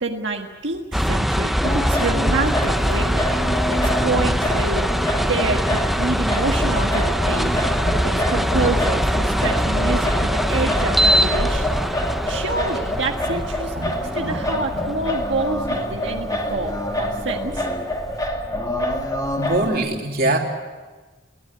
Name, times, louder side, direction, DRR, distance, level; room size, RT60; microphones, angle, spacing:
voice 1, 0.0-3.3 3.7-4.9 5.3-7.7 8.0-11.8 12.3-17.6, right 3 dB, 90° right, 2 dB, 1.6 m, -27 dB
sound 1, 0.9-18.1, equal, ahead, 0.7 m, -23 dB
Singing, 1.6-19.8, left 1 dB, 20° left, 2.4 m, -26 dB
voice 2, 19.4-20.4, right 2 dB, 55° right, 1 dB, 3.0 m, -23 dB
23.5 x 17.0 x 9.7 m, 1.3 s
head